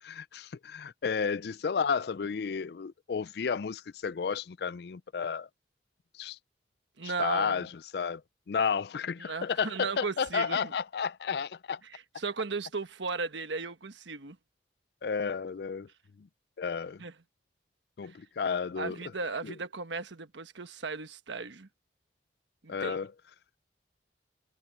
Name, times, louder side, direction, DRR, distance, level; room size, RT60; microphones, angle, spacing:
voice 1, 0.0-5.5 6.2-6.4 7.0-8.2 8.5-11.8 15.0-15.9 16.2-16.3 16.6-17.0 18.0-19.0 19.4-19.5 22.7-23.1, left 6 dB, 60° left, 0.4 m, -32 dB
voice 2, 7.0-7.7 9.2-10.7 11.8-14.4 17.0-17.1 18.0-18.2 18.8-21.7 22.6-23.0, right 4 dB, 80° right, 1.2 m, -36 dB
head